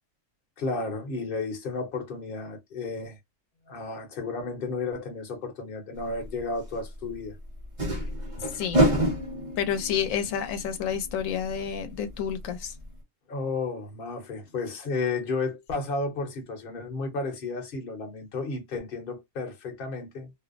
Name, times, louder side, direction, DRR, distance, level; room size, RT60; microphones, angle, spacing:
voice 1, 0.6-3.2 3.7-7.4 13.3-20.3, left 3 dB, 50° left, 1.0 m, -32 dB
sound 1, 6.2-6.3 7.6-12.2 12.4-12.5 12.8-12.9, right 1 dB, 30° right, 1.0 m, -28 dB
voice 2, 9.6-12.7, left 8 dB, 90° left, 1.0 m, -29 dB
2.6 x 2.0 x 2.4 m
omnidirectional pair, 1.3 m